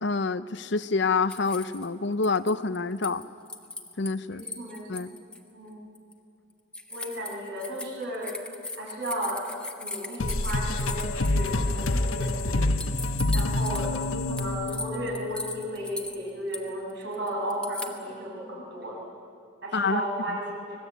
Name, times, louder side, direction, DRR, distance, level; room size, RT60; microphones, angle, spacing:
voice 1, 0.0-3.3 4.0-4.5 4.9-5.1 19.7-20.0, left 4 dB, 55° left, 14 dB, 0.7 m, -27 dB
sound 1, 1.3-1.9 2.2-4.1 4.4-5.4 5.9-6.1 6.7-12.0 12.4-12.5 12.8-14.0 14.4-17.9, left 2 dB, 5° left, 1.3 m, -38 dB
voice 2, 4.3-4.9 5.5-5.8 6.9-8.3 8.8-9.5 9.8-12.7 13.3-19.0 19.6-20.5, right 1 dB, 55° right, -2 dB, 7.0 m, -34 dB
sound 2, 10.2-15.5, left 2 dB, 85° left, 1.2 m, -27 dB
25.5 x 20.0 x 8.3 m, 2.7 s
head